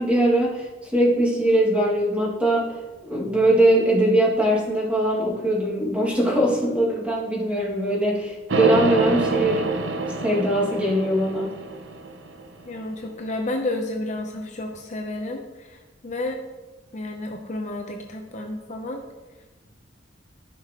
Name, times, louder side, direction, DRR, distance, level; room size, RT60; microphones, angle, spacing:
voice 1, 0.0-2.8 3.1-9.7 10.2-11.6, right 1 dB, 10° right, -5 dB, 2.1 m, -21 dB
sound 1, 8.5-12.6, right 3 dB, 80° right, 0.8 m, -26 dB
voice 2, 12.7-15.8 16.0-16.4 16.9-19.0, left 2 dB, 40° left, 3 dB, 0.7 m, -31 dB
14.0 x 5.8 x 3.0 m, 1.2 s
head